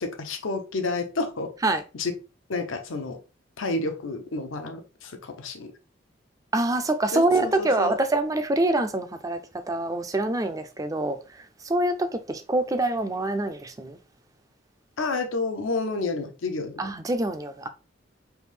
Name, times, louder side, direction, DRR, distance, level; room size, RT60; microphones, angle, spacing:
voice 1, 0.0-1.5 1.9-2.1 2.5-3.2 3.6-5.7 7.1-8.0 15.0-16.9, left 3 dB, 85° left, 0.7 m, -30 dB
voice 2, 6.5-9.4 9.7-11.2 11.6-14.0 16.8-17.7, right 2 dB, 15° right, 0.3 m, -25 dB
3.4 x 2.6 x 3.2 m
head